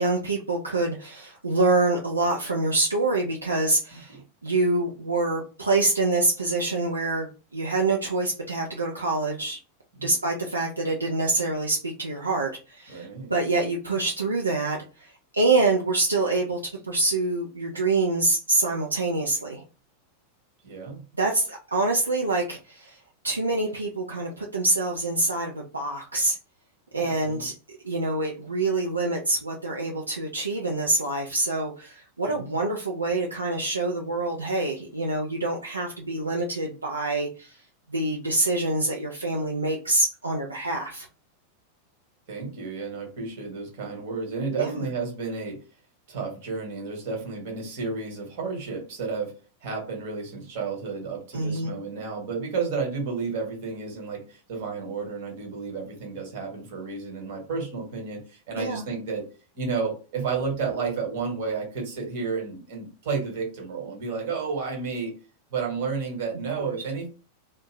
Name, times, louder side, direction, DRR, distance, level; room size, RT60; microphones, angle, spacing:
voice 1, 0.0-4.2 4.4-9.6 10.0-19.6 21.2-23.0 23.2-26.4 26.9-37.5 37.9-41.1 44.6-44.8 51.3-51.7 58.6-58.8, right 2 dB, 80° right, -1 dB, 0.4 m, -26 dB
voice 2, 12.9-13.3 20.6-21.0 27.0-27.5 32.3-32.5 42.3-45.6 46.1-49.3 49.6-59.2 59.5-65.1 65.5-67.1, right 5 dB, 50° right, 1 dB, 1.2 m, -31 dB
2.5 x 2.0 x 3.1 m, 0.34 s
figure-of-eight pair, 90°, 0 cm